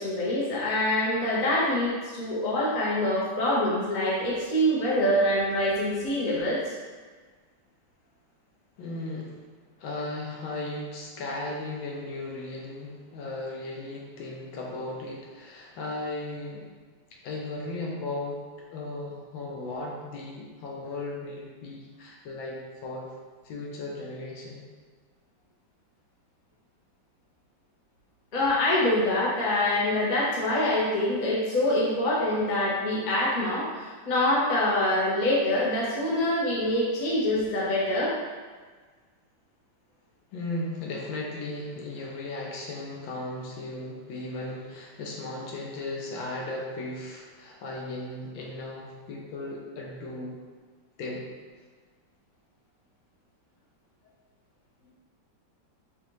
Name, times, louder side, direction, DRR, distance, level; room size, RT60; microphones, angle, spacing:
voice 1, 0.0-6.7 28.3-38.1, left 1 dB, 35° left, -6 dB, 0.7 m, -25 dB
voice 2, 8.8-9.4 9.8-16.7 17.2-18.4 18.7-23.1 23.4-24.6 40.3-50.4 51.0-51.3, left 2 dB, 80° left, -2 dB, 1.5 m, -36 dB
5.3 x 2.5 x 3.1 m, 1.4 s
omnidirectional pair, 2.1 m